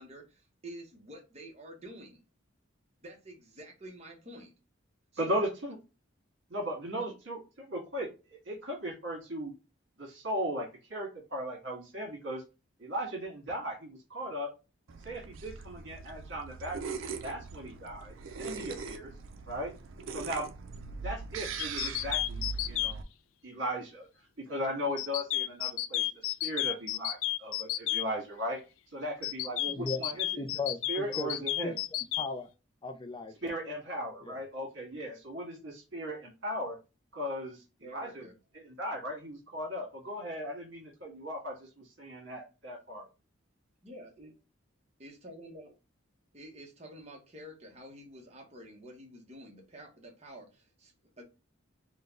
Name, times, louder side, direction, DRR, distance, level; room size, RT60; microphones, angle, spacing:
voice 1, 0.0-2.2 3.0-4.5 5.1-5.4 6.9-7.1 37.8-38.4 43.8-44.3 45.0-45.7 46.3-51.2, right 1 dB, 35° right, 1.1 m, -49 dB
voice 2, 5.2-5.8 6.5-9.5 10.0-12.4 12.8-14.5 15.0-19.1 19.5-19.7 20.1-20.5 21.0-23.0 23.4-24.1 24.5-28.6 28.9-30.5 30.9-31.7 33.4-36.8 37.1-37.6 37.9-38.2 38.5-43.0, equal, 65° right, 1.7 m, -37 dB
sound 1, 14.9-23.0, right 5 dB, 85° right, 0.5 m, -41 dB
sound 2, 21.6-22.9 25.0-28.0 29.2-32.3, left 14 dB, 90° left, 0.3 m, -31 dB
voice 3, 29.7-30.0 30.4-31.3 31.6-31.8 32.2-32.5 32.8-33.3 34.2-34.4, left 3 dB, 25° left, 0.4 m, -36 dB
3.8 x 2.3 x 3.7 m
head